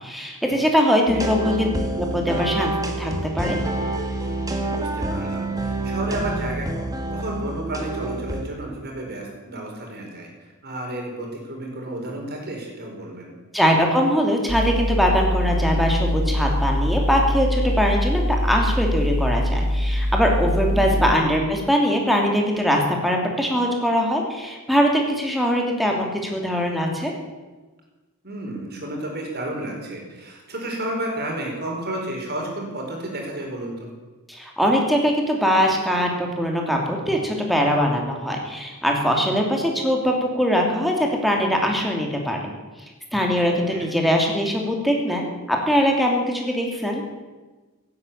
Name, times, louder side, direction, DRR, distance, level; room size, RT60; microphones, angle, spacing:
voice 1, 0.0-1.7 2.0-2.7 3.0-3.6 13.5-27.1 34.3-42.5 43.1-47.0, equal, ahead, 0 dB, 2.8 m, -22 dB
sound 1, 1.1-8.4, right 2 dB, 15° right, 1.8 m, -27 dB
voice 2, 4.6-10.3 10.6-13.3 20.7-21.0 28.2-33.9 43.4-43.9, right 1 dB, 45° right, 0 dB, 4.6 m, -32 dB
sound 2, 14.5-21.1, equal, 70° right, 1.6 m, -23 dB
17.0 x 9.6 x 8.7 m, 1.2 s
head